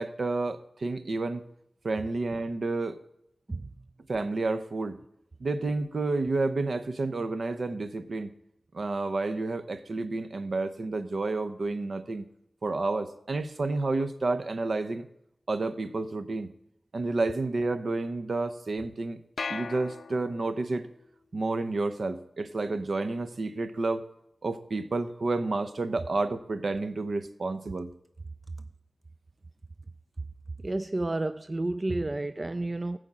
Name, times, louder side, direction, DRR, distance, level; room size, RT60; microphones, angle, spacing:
voice 1, 0.0-1.4 1.8-3.0 4.1-5.0 5.4-8.3 8.7-12.3 12.6-15.1 15.5-16.5 16.9-19.2 19.5-20.9 21.3-24.0 24.4-27.9, right 3 dB, 65° right, 0.8 m, -30 dB
sound 1, 19.4-20.7, left 4 dB, 75° left, 0.4 m, -38 dB
voice 2, 30.6-33.0, right 2 dB, 35° right, 0.4 m, -30 dB
15.0 x 5.1 x 8.6 m
wide cardioid pair, 80°, 0 cm